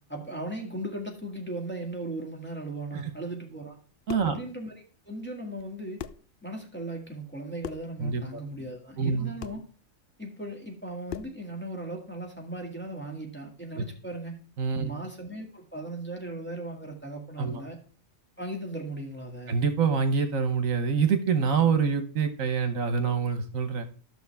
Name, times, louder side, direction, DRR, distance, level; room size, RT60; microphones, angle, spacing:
voice 1, 0.1-3.8 4.2-6.0 6.4-9.6 10.2-14.4 14.8-17.8 18.4-19.6, right 1 dB, 10° left, -1 dB, 2.1 m, -37 dB
sound 1, 4.1-4.4 5.6-5.7 6.0-6.3 7.6-8.0 9.4-9.7 11.1-11.4, left 10 dB, 85° left, 0.4 m, -39 dB
voice 2, 8.0-8.4 9.0-9.3 13.8-13.9 14.6-14.9 17.4-17.6 19.5-23.9, right 6 dB, 75° right, 10 dB, 1.4 m, -26 dB
12.0 x 6.4 x 3.4 m, 0.40 s
omnidirectional pair, 1.4 m